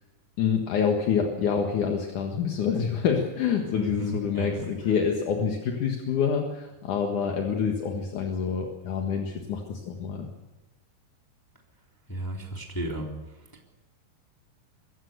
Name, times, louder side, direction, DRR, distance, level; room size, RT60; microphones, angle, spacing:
voice 1, 0.4-10.3, left 6 dB, 55° left, 2 dB, 2.5 m, -27 dB
voice 2, 3.8-4.5 12.1-13.1, right 1 dB, 5° left, 0 dB, 2.2 m, -32 dB
24.0 x 16.5 x 6.8 m, 1.1 s
omnidirectional pair, 5.4 m